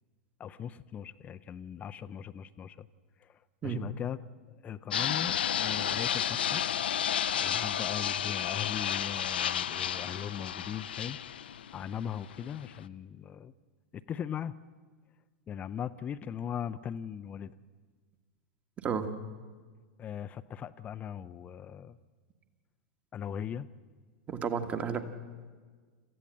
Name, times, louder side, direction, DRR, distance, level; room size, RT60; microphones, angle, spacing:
voice 1, 0.4-2.9 3.2-4.2 4.5-6.6 7.3-11.2 11.7-13.5 13.9-14.5 15.5-17.5 20.0-22.0 23.1-23.7 25.0-25.1, left 9 dB, 25° left, 12 dB, 0.6 m, -39 dB
Fixed-wing aircraft airplane, 4.9-12.8, left 9 dB, 65° left, 0.6 m, -32 dB
voice 2, 18.8-19.1 24.3-25.0, right 7 dB, 25° right, 8 dB, 1.6 m, -32 dB
27.5 x 15.0 x 7.7 m, 1.5 s
figure-of-eight pair, 90°, 6 cm